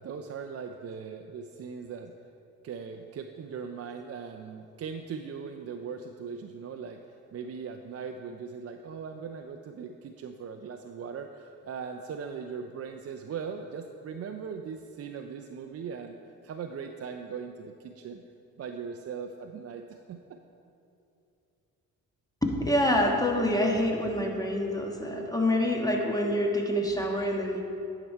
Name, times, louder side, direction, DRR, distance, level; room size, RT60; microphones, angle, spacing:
voice 1, 0.0-2.1 2.6-7.0 7.3-16.2 16.4-18.2 18.6-20.4, right 6 dB, 45° right, 5 dB, 0.5 m, -39 dB
voice 2, 22.4-27.6, left 1 dB, 10° left, 0 dB, 1.3 m, -26 dB
10.0 x 4.9 x 4.4 m, 2.7 s
supercardioid pair, 60°, 34 cm